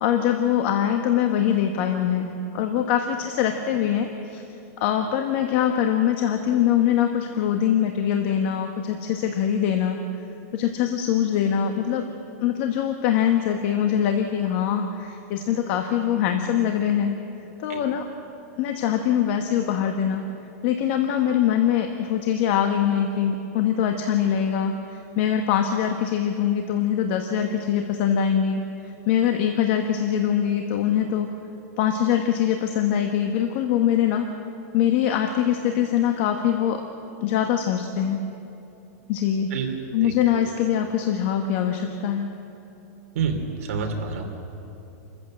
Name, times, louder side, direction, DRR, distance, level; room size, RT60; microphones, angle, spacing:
voice 1, 0.0-4.4 4.8-10.0 10.5-12.1 12.4-17.2 17.6-18.1 18.6-20.2 20.6-31.3 31.8-34.3 34.7-36.8 37.2-38.2 39.1-39.5 39.9-42.3, left 9 dB, 45° left, 5 dB, 1.3 m, -23 dB
voice 2, 40.0-40.5 43.1-44.2, right 5 dB, 60° right, 3 dB, 3.3 m, -28 dB
28.0 x 14.5 x 7.8 m, 2.8 s
supercardioid pair, 165°, 9 cm